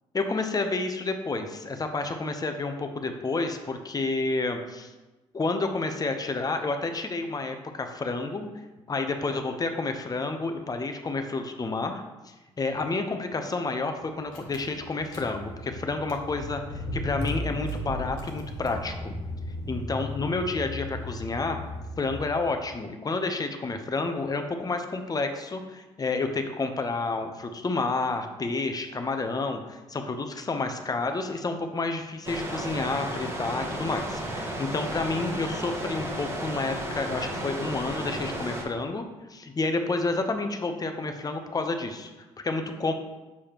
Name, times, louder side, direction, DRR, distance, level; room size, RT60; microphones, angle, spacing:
voice 1, 0.1-4.9 5.3-8.5 8.9-16.6 16.9-19.2 19.7-21.6 22.0-39.0 39.3-42.1 42.4-42.9, left 3 dB, 30° left, 6 dB, 0.8 m, -30 dB
Car / Engine, 14.0-14.1 14.3-22.7, left 1 dB, 80° left, 1.2 m, -36 dB
sound 1, 32.2-38.6, right 1 dB, 20° right, 1.3 m, -33 dB
7.1 x 4.8 x 3.0 m, 1.1 s
supercardioid pair, 65°, 14 cm